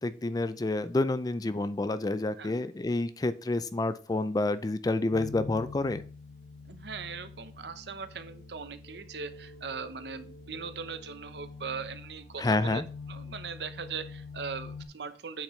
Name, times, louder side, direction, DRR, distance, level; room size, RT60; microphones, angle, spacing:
voice 1, 0.0-6.0 12.4-12.8, left 2 dB, 20° left, 14 dB, 0.4 m, -29 dB
sound 1, 5.1-14.9, left 4 dB, 60° left, 1.7 m, -46 dB
voice 2, 6.6-12.8 13.1-15.4, right 5 dB, 70° right, 11 dB, 0.8 m, -40 dB
8.3 x 6.4 x 3.2 m, 0.39 s
head